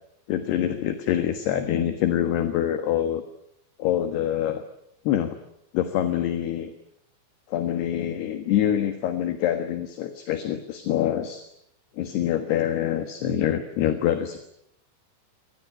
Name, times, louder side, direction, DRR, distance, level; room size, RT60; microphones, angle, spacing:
voice 1, 0.3-3.2 3.8-4.6 5.0-5.4 5.7-6.7 7.5-11.4 12.0-14.4, left 11 dB, 65° left, 8 dB, 3.2 m, -25 dB
26.5 x 19.5 x 9.0 m, 0.73 s
omnidirectional pair, 5.7 m